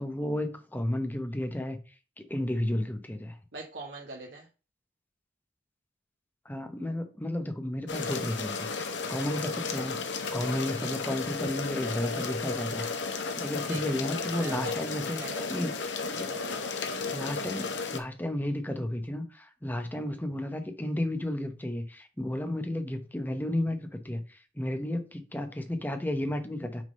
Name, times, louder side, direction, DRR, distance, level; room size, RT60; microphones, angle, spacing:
voice 1, 0.0-1.8 2.2-3.4 6.4-8.5 9.1-10.0 10.3-12.9 13.4-15.7 16.2-16.3 17.1-23.8 24.0-26.8, left 1 dB, 10° left, 1.0 m, -32 dB
voice 2, 3.5-4.5 13.7-13.9 14.4-14.8 15.1-15.5 16.3-17.5, right 3 dB, 75° right, 1.4 m, -42 dB
sound 1, 7.9-18.0, left 4 dB, 80° left, 1.0 m, -34 dB
6.2 x 3.8 x 5.3 m
head